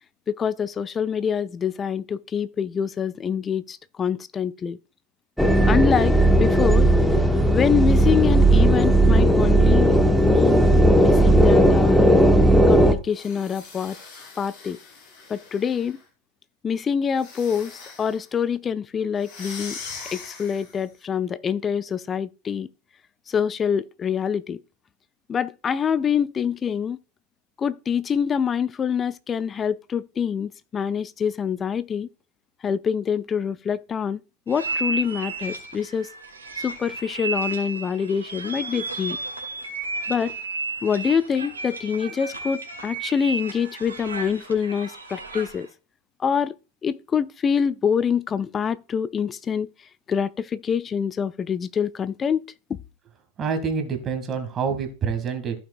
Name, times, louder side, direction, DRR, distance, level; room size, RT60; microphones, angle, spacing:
voice 1, 0.3-4.8 5.6-6.9 7.5-10.6 11.0-12.3 12.7-14.0 14.4-14.8 15.3-16.0 16.6-19.8 20.1-22.7 23.3-24.6 25.3-27.0 27.6-32.1 32.6-34.2 34.5-36.1 36.6-39.2 40.1-40.3 40.8-45.7 46.2-46.5 46.8-49.7 50.1-52.4 52.7-52.8, left 7 dB, 20° left, 0.4 m, -25 dB
sound 1, 5.4-12.9, right 1 dB, ahead, 1.0 m, -16 dB
sound 2, 13.1-16.0 17.1-18.3 19.2-20.9, left 5 dB, 45° left, 5.5 m, -41 dB
sound 3, 34.5-45.7, right 3 dB, 75° right, 2.1 m, -33 dB
voice 2, 53.4-55.5, right 5 dB, 25° right, 2.0 m, -27 dB
15.0 x 5.8 x 2.4 m
figure-of-eight pair, 90°, 0 cm